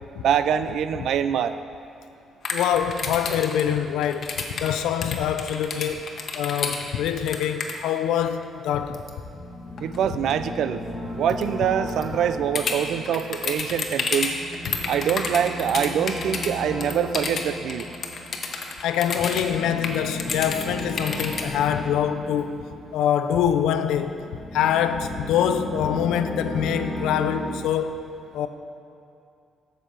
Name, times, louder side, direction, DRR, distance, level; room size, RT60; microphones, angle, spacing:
voice 1, 0.2-1.5 9.8-10.8 11.1-14.3 14.9-17.9, right 8 dB, 75° right, 0.4 m, -24 dB
sound 1, 2.4-7.7 8.9-9.1 9.8-10.0 10.3-10.4 11.3-11.4 11.9-12.0 12.6-16.5 16.8-19.5 19.8-21.5, left 5 dB, 55° left, 1.0 m, -29 dB
voice 2, 2.5-6.1 6.4-9.0 14.7-14.8 18.8-24.2 24.5-27.9 28.3-28.5, left 9 dB, 85° left, 0.5 m, -25 dB
sound 2, 9.2-23.5 24.0-27.6, left 1 dB, 30° right, 1.7 m, -36 dB
8.0 x 6.8 x 5.7 m
cardioid pair, 90°, 0 cm